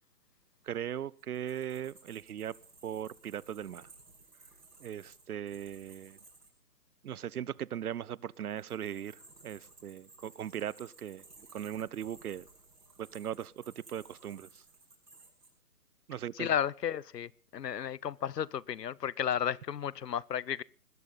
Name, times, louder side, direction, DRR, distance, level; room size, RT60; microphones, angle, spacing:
voice 1, 0.6-2.6 2.8-3.9 4.8-6.2 7.0-11.2 11.5-12.5 13.0-14.6 16.1-16.5, right 10 dB, 70° right, 0.7 m, -39 dB
sound 1, 1.2-6.5 8.3-15.5, right 3 dB, 85° right, 7.5 m, -58 dB
voice 2, 16.3-20.6, left 9 dB, 85° left, 0.8 m, -33 dB
20.5 x 15.0 x 4.0 m
hypercardioid pair, 155°, 47 cm